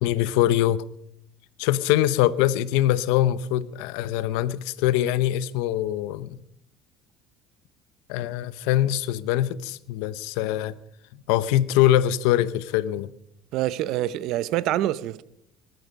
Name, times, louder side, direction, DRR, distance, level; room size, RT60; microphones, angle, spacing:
voice 1, 0.0-0.8 1.6-6.4 8.1-10.8 11.3-13.1, left 13 dB, 90° left, 0.8 m, -23 dB
voice 2, 13.5-15.2, right 14 dB, 65° right, 0.8 m, -26 dB
19.5 x 13.0 x 5.4 m
cardioid pair, 130°, 0 cm